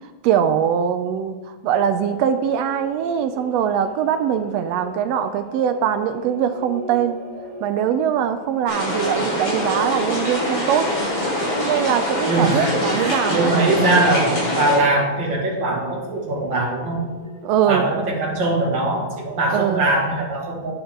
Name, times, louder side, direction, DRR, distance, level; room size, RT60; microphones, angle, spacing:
voice 1, 0.2-7.2 7.6-10.9 11.6-13.5 17.4-17.9 19.5-19.8, right 8 dB, 80° right, 9 dB, 1.5 m, -22 dB
sound 1, 1.6-20.1, equal, 20° left, 3.2 m, -40 dB
sound 2, 8.7-14.8, equal, 50° left, 4.7 m, -24 dB
voice 2, 12.3-17.1 17.7-20.7, right 2 dB, 45° right, -3 dB, 2.4 m, -21 dB
9.9 x 9.6 x 3.7 m, 1.2 s
omnidirectional pair, 3.3 m